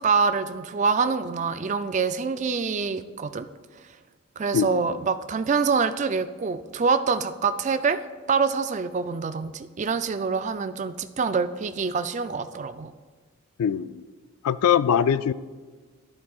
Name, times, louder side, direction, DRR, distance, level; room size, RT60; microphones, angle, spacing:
voice 1, 0.0-3.5 4.4-8.0 8.3-12.9, right 5 dB, 35° right, 11 dB, 0.3 m, -25 dB
voice 2, 4.5-5.0 13.6-14.0 14.4-15.3, left 8 dB, 90° left, 16 dB, 0.3 m, -22 dB
12.0 x 11.0 x 2.4 m, 1.4 s
head